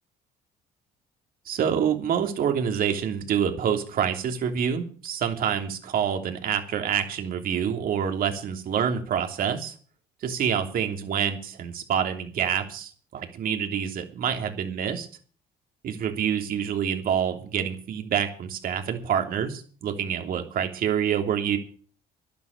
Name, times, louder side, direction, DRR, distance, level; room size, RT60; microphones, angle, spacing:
voice 1, 1.4-9.7 10.2-15.1 15.8-21.6, right 8 dB, 60° right, 5 dB, 3.1 m, -27 dB
12.5 x 11.5 x 6.9 m, 0.42 s
cardioid pair, 110°, 17 cm